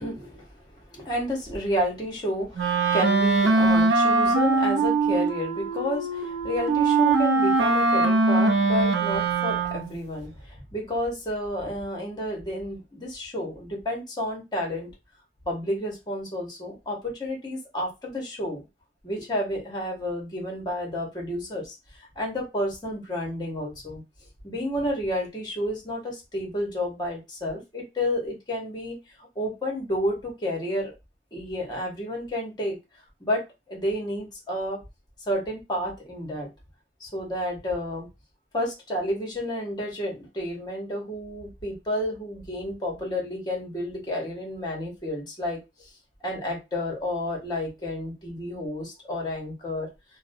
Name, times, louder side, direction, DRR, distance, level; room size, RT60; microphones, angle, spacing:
voice 1, 0.0-14.9 15.5-18.6 19.0-24.0 24.4-29.0 29.3-30.9 31.3-32.8 33.2-33.4 33.7-34.8 35.3-36.5 37.0-38.1 38.5-45.6 46.2-49.9, left 1 dB, 25° left, 0 dB, 0.9 m, -30 dB
Wind instrument woodwind instrument, 2.6-10.0, right 3 dB, 75° right, 0.5 m, -22 dB
2.5 x 2.1 x 2.5 m, 0.24 s
head